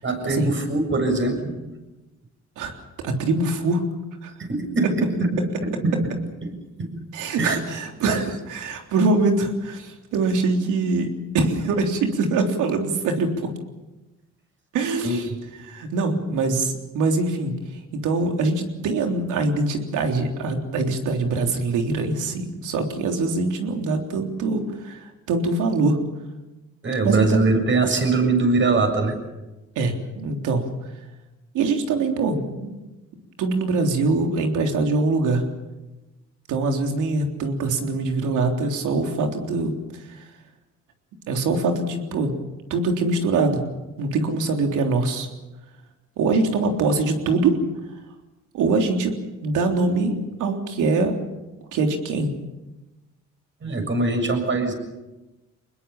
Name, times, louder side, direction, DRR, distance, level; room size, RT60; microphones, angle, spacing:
voice 1, 0.0-1.4 4.4-5.3 5.6-6.1 6.4-6.9 7.4-7.6 15.0-15.2 26.8-29.2 53.6-54.7, right 3 dB, 40° right, 5 dB, 7.1 m, -22 dB
voice 2, 3.0-3.8 4.2-4.3 7.1-13.5 14.7-15.3 15.6-17.5 18.0-26.0 27.0-27.4 29.8-30.7 31.5-32.8 33.4-35.4 36.5-39.8 41.3-42.3 42.7-43.6 44.0-45.3 46.2-47.6 48.5-49.1 49.4-51.1 51.7-52.3, right 3 dB, 90° right, 3 dB, 3.6 m, -23 dB
25.0 x 21.0 x 7.2 m, 1.1 s
cardioid pair, 90°, 30 cm